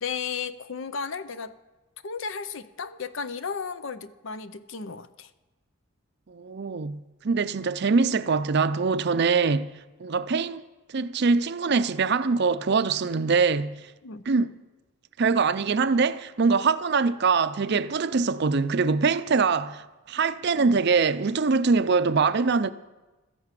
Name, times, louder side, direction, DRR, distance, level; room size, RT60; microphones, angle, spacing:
voice 1, 0.0-1.5 2.0-5.3 14.0-14.2, left 5 dB, 60° left, 0.6 m, -34 dB
voice 2, 6.3-10.6 10.9-13.9 14.3-14.5 15.2-22.7, right 4 dB, 50° right, 0.5 m, -23 dB
13.5 x 10.5 x 7.5 m
head